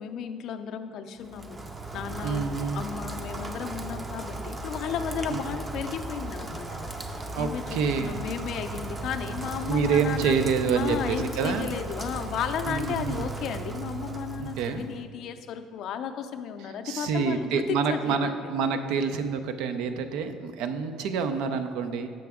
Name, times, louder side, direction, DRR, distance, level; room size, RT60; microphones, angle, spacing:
voice 1, 0.0-1.6 1.9-6.9 7.4-10.3 10.7-18.6, left 8 dB, 60° left, 7 dB, 0.4 m, -34 dB
Rain, 1.2-15.0, right 2 dB, 20° right, 0.5 m, -36 dB
voice 2, 2.2-2.8 5.3-5.4 7.3-8.2 9.7-11.7 12.7-13.2 14.4-14.8 16.8-22.1, right 6 dB, 80° right, 8 dB, 0.5 m, -27 dB
7.6 x 5.8 x 3.5 m, 2.1 s
cardioid pair, 125°, 0 cm